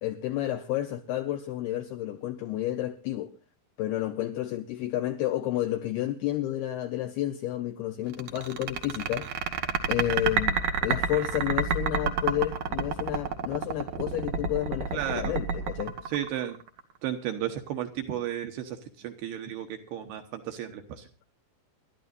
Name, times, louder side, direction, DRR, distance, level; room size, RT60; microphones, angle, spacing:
voice 1, 0.0-3.3 3.8-9.3 9.9-16.0, left 13 dB, 80° left, 2.3 m, -31 dB
sound 1, 8.1-16.8, right 6 dB, 90° right, 1.6 m, -28 dB
voice 2, 14.9-15.3 16.1-16.6 17.0-21.1, right 11 dB, 75° right, 2.6 m, -33 dB
28.5 x 12.5 x 2.5 m
omnidirectional pair, 5.5 m